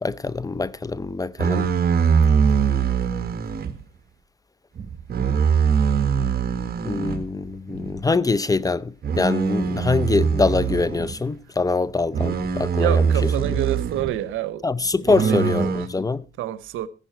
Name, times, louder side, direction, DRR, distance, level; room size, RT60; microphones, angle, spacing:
voice 1, 0.0-1.7 6.8-13.1 14.6-16.3, left 3 dB, 20° left, 0.6 m, -24 dB
sound 1, 1.4-3.7 4.8-7.2 7.7-8.0 9.0-11.2 12.1-14.1 15.1-15.9, right 6 dB, 50° right, 1.6 m, -22 dB
voice 2, 12.8-14.7 15.0-15.6 16.4-16.9, right 13 dB, 90° right, 0.8 m, -27 dB
14.5 x 10.5 x 4.5 m
cardioid pair, 90°, 20 cm